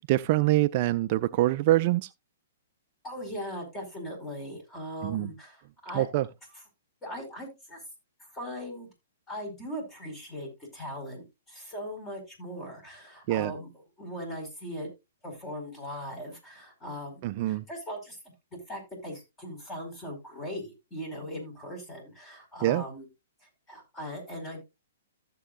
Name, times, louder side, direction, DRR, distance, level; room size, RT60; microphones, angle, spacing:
voice 1, 0.1-2.1 5.0-5.3 5.9-6.3 13.3-13.5 17.2-17.6 22.6-22.8, right 16 dB, 45° right, 0.4 m, -24 dB
voice 2, 3.0-6.1 6.5-6.6 7.0-7.8 8.3-8.9 9.3-14.9 15.2-18.2 18.5-23.1 23.7-24.6, equal, 15° left, 5.1 m, -39 dB
14.0 x 7.6 x 2.5 m
figure-of-eight pair, 120°, 0 cm